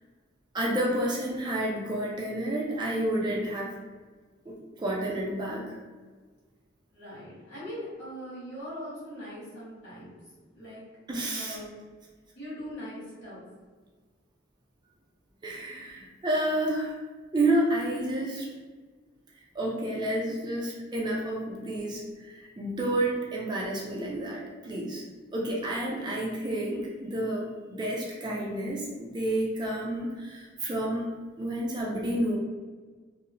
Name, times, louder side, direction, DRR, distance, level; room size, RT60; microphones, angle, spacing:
voice 1, 0.5-3.7 4.5-5.8 11.1-11.6 15.4-17.0 17.3-18.5 19.5-25.0 25.3-31.1 31.4-32.4, right 1 dB, 25° right, -3 dB, 0.3 m, -30 dB
voice 2, 6.9-10.2 10.5-10.8 11.3-11.7 12.3-13.4, equal, 70° left, -8 dB, 1.4 m, -41 dB
2.8 x 2.0 x 2.5 m, 1.4 s
head